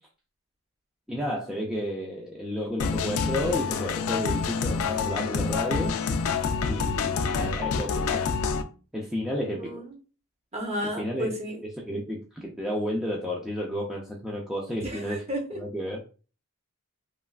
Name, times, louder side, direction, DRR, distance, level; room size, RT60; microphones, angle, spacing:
voice 1, 1.1-6.0 6.6-8.3 8.9-9.7 11.0-11.3 11.9-15.2 15.6-16.0, equal, ahead, -4 dB, 0.4 m, -31 dB
sound 1, 2.8-8.6, left 5 dB, 70° left, 0.4 m, -27 dB
voice 2, 9.5-9.9 10.5-11.6 14.8-15.6, equal, 30° right, 2 dB, 0.7 m, -33 dB
3.1 x 2.3 x 2.3 m, 0.35 s
head